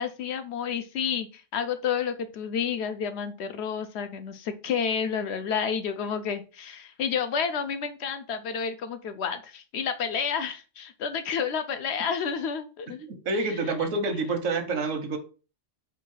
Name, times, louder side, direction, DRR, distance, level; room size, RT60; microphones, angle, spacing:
voice 1, 0.0-13.0 13.5-13.6, left 7 dB, 65° left, 0.8 m, -30 dB
voice 2, 13.2-15.2, right 3 dB, 80° right, 1.2 m, -27 dB
4.6 x 2.4 x 4.7 m
omnidirectional pair, 1.3 m